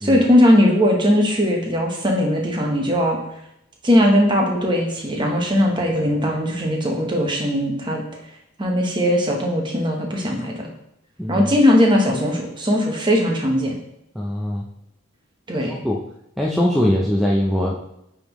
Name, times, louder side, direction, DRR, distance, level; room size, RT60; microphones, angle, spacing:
voice 1, 0.0-3.2 3.8-8.0 8.6-10.6 11.3-13.8 15.5-15.8, equal, 20° right, 0 dB, 1.0 m, -19 dB
voice 2, 11.2-11.5 14.2-14.7 15.6-16.0 16.4-17.8, equal, ahead, -4 dB, 0.5 m, -21 dB
8.6 x 3.7 x 3.0 m, 0.79 s
head